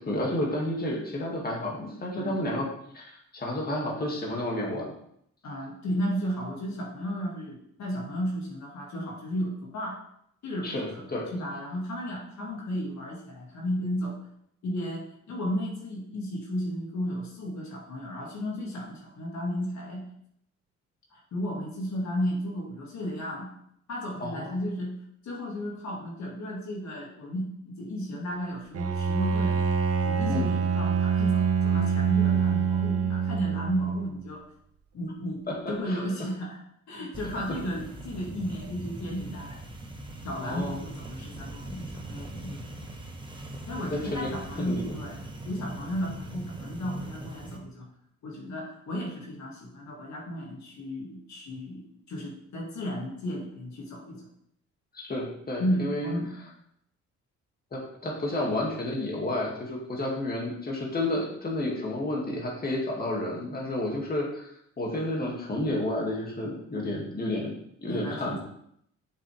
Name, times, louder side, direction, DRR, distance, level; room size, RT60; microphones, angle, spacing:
voice 1, 0.0-2.7 2.9-4.9 10.6-11.3 24.2-24.6 30.3-30.5 35.5-36.0 37.3-37.5 40.4-40.8 43.9-44.3 44.6-44.8 54.9-56.1 57.7-64.5 64.8-67.6 67.8-68.4, left 1 dB, 30° left, -2 dB, 2.2 m, -31 dB
voice 2, 5.4-10.0 10.4-11.1 11.3-14.2 14.6-20.0 21.1-23.5 23.9-24.9 25.2-29.7 30.0-34.4 34.9-36.6 36.9-39.6 40.2-42.7 43.7-45.2 45.5-47.9 48.2-54.3 55.6-56.3 67.9-68.4, equal, 65° left, -2 dB, 2.2 m, -33 dB
Bowed string instrument, 28.7-34.1, right 6 dB, 50° right, 0.9 m, -25 dB
sound 1, 37.1-47.6, right 2 dB, 15° right, 1.3 m, -41 dB
7.4 x 6.8 x 3.4 m, 0.71 s
cardioid pair, 90°, 30 cm